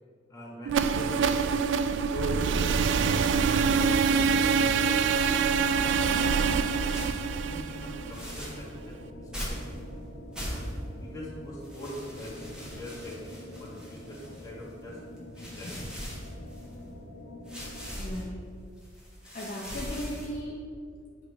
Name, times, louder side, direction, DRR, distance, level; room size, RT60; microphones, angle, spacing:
voice 1, 0.3-1.6 2.0-5.4 5.7-6.9 7.5-9.7 10.4-10.7 11.0-15.0 15.3-15.7, left 1 dB, 20° left, -5 dB, 1.5 m, -42 dB
sound 1, 0.7-8.6, right 5 dB, 70° right, 0.3 m, -25 dB
sound 2, 6.8-7.3 8.1-8.7 9.3-9.8 10.3-10.9 11.6-14.6 15.2-16.8 17.5-18.2 18.8-20.4, equal, 5° right, 1.2 m, -40 dB
sound 3, 7.7-18.0, left 1 dB, 85° left, 0.8 m, -45 dB
voice 2, 18.0-18.5 19.3-20.6 21.0-21.1, equal, 45° left, -4 dB, 0.7 m, -37 dB
8.3 x 3.2 x 4.8 m, 2.2 s
head